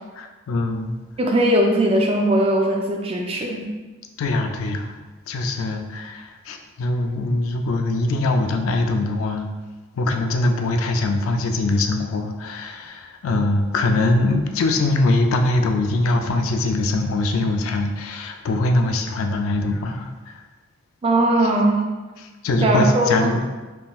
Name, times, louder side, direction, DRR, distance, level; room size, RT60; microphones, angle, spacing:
voice 1, 0.2-0.9 4.2-4.9 5.3-9.5 10.0-20.3 22.4-23.5, left 2 dB, 80° left, 5 dB, 0.3 m, -22 dB
voice 2, 1.2-3.6 21.0-21.9 22.6-23.3, right 1 dB, 25° right, 1 dB, 0.3 m, -19 dB
3.6 x 2.6 x 2.3 m, 1.2 s
head